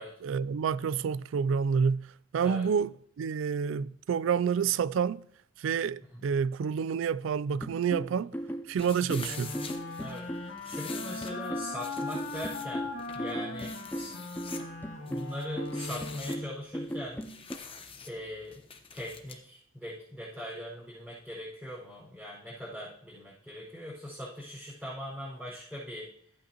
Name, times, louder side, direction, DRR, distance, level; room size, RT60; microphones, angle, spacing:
voice 1, 0.2-5.2 5.6-8.3 8.7-9.5, right 6 dB, 75° right, 0.3 m, -29 dB
sound 1, 7.6-17.6, equal, 10° left, 0.5 m, -38 dB
sound 2, 8.8-19.4, left 6 dB, 30° left, 1.0 m, -47 dB
sound 3, 9.2-16.7, left 3 dB, 75° left, 1.9 m, -40 dB
voice 2, 10.6-12.9 13.1-14.1 15.1-17.2 18.0-18.6 18.9-26.1, equal, 5° right, 5.1 m, -41 dB
14.5 x 8.7 x 2.9 m
head